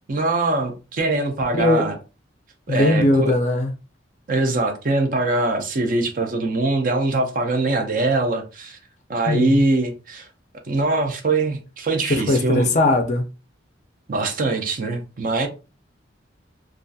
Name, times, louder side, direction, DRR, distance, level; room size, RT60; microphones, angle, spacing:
voice 1, 0.1-2.0 2.7-3.3 4.3-8.8 9.1-10.3 10.6-12.7 14.1-15.5, right 2 dB, 45° right, 0.5 m, -22 dB
voice 2, 1.5-1.9 2.7-3.7 9.3-9.6 12.1-13.3, left 2 dB, 40° left, 0.4 m, -19 dB
2.6 x 2.4 x 2.3 m
head